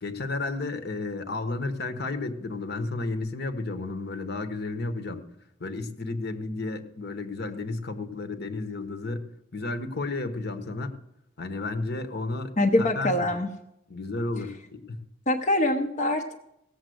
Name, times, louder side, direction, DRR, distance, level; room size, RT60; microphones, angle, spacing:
voice 1, 0.0-5.2 5.6-9.2 9.5-10.9 11.4-12.5 12.8-13.3 13.9-15.0, left 3 dB, 50° left, 8 dB, 1.1 m, -32 dB
voice 2, 12.6-13.5 15.3-16.3, left 1 dB, 35° left, 1 dB, 0.8 m, -24 dB
17.0 x 7.3 x 7.8 m, 0.84 s
head